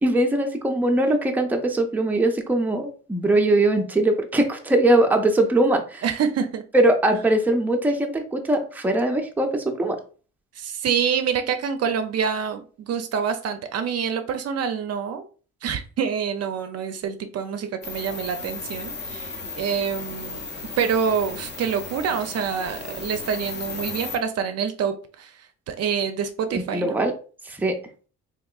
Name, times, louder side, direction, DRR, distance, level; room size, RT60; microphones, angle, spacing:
voice 1, 0.0-6.0 6.7-10.0 26.5-27.1 27.5-27.8, right 1 dB, 5° right, 3 dB, 0.5 m, -21 dB
voice 2, 6.0-6.6 10.6-15.2 15.6-20.5 20.8-25.3 25.7-27.0, right 7 dB, 55° right, 7 dB, 0.5 m, -26 dB
sound 1, 17.8-24.2, left 4 dB, 35° left, 0.8 m, -35 dB
3.5 x 2.9 x 2.3 m, 0.39 s
cardioid pair, 90°, 30 cm